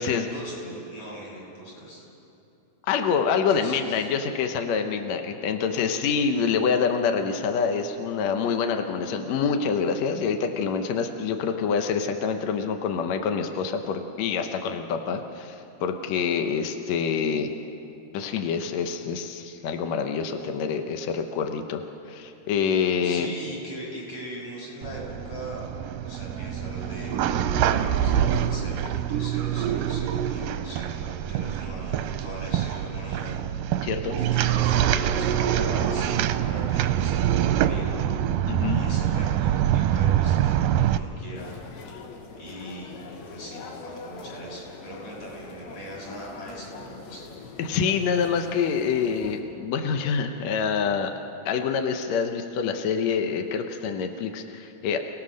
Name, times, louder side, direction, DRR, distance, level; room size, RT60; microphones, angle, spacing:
voice 1, 0.0-2.1 3.5-4.1 23.0-25.7 26.0-27.2 27.6-33.4 34.2-38.0 38.7-41.5 42.4-47.2, right 1 dB, 45° left, -5 dB, 7.5 m, -40 dB
voice 2, 2.8-17.5 18.1-23.3 33.8-34.1 38.5-38.8 47.6-51.1 51.5-55.0, left 6 dB, 70° left, 5 dB, 1.7 m, -26 dB
sound 1, 24.8-41.0, right 10 dB, 80° right, 2.0 m, -25 dB
sound 2, 41.3-49.4, left 4 dB, 85° left, 3.4 m, -43 dB
29.5 x 18.0 x 6.4 m, 2.9 s
omnidirectional pair, 4.3 m